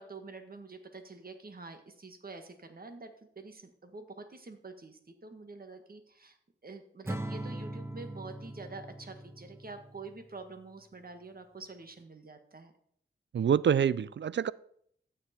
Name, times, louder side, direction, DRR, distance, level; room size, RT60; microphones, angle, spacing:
voice 1, 0.0-6.4 6.6-12.7, right 3 dB, 45° right, 7 dB, 1.7 m, -47 dB
Acoustic guitar / Strum, 7.1-10.4, right 1 dB, 10° right, 0.9 m, -41 dB
voice 2, 13.3-14.5, right 8 dB, 60° right, 20 dB, 0.5 m, -26 dB
14.5 x 7.4 x 4.4 m, 0.67 s
cardioid pair, 70°, 21 cm